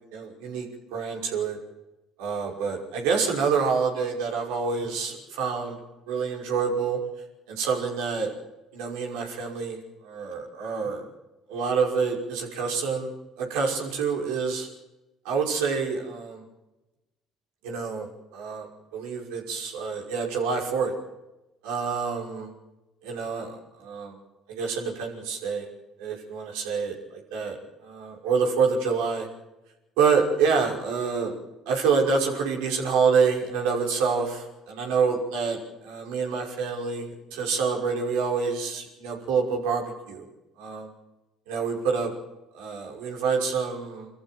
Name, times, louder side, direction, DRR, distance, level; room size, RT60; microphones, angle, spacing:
voice 1, 0.1-1.6 2.2-5.8 6.1-7.0 7.5-8.3 8.7-11.0 11.5-13.1 13.4-14.7 15.2-16.4 17.6-18.1 18.3-18.7 18.9-20.9 21.6-22.5 23.0-24.2 24.5-25.7 26.0-27.6 27.8-29.3 30.0-31.3 31.7-40.3 40.6-40.9 41.5-42.1 42.5-44.1, right 5 dB, 75° right, 1 dB, 5.7 m, -27 dB
27.0 x 14.5 x 9.3 m, 0.98 s
hypercardioid pair, 60°, 0 cm